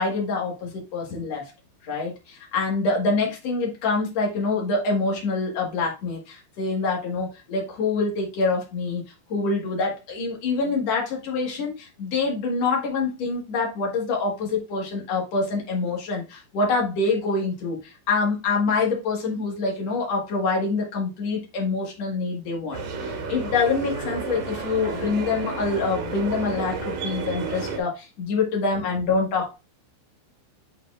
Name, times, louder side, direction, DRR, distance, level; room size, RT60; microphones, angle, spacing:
voice 1, 0.0-1.5 1.8-9.0 9.3-29.6, left 3 dB, 75° left, -1 dB, 1.5 m, -26 dB
sound 1, 22.7-27.8, right 4 dB, 60° right, 3.8 m, -31 dB
12.0 x 4.3 x 2.4 m, 0.26 s
omnidirectional pair, 5.5 m